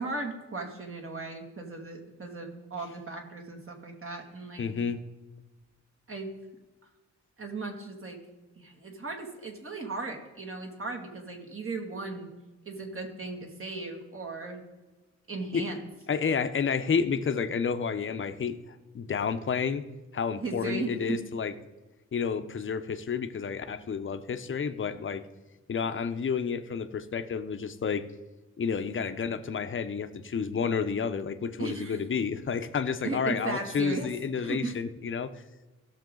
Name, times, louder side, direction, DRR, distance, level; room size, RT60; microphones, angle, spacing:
voice 1, 0.0-4.6 6.1-6.3 7.4-8.2 8.6-12.3 12.7-14.6 15.3-15.8 20.4-21.2 31.6-32.0 33.0-34.1 34.4-34.8, right 3 dB, 45° right, 2 dB, 2.3 m, -36 dB
voice 2, 4.6-5.0 15.5-15.6 16.1-18.6 18.9-19.8 20.1-21.5 22.1-25.2 25.7-28.0 28.6-35.3, left 6 dB, 45° left, 9 dB, 0.8 m, -30 dB
16.5 x 6.7 x 3.9 m, 1.1 s
wide cardioid pair, 115°, 29 cm